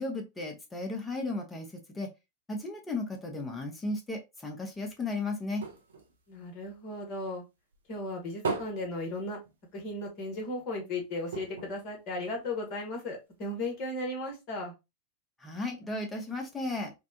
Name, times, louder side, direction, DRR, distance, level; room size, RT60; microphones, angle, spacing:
voice 1, 0.0-2.1 2.5-5.6 15.4-16.9, left 2 dB, 15° left, 0.7 m, -35 dB
sound 1, 4.7-7.3 7.7-10.0 10.3-10.4 10.7-10.8 11.3-12.8 13.4-13.5, right 4 dB, 65° right, 0.5 m, -40 dB
voice 2, 6.3-7.4 7.9-9.4 9.7-14.7, left 2 dB, 40° left, 1.0 m, -36 dB
2.6 x 2.1 x 2.6 m
figure-of-eight pair, 90°, 0 cm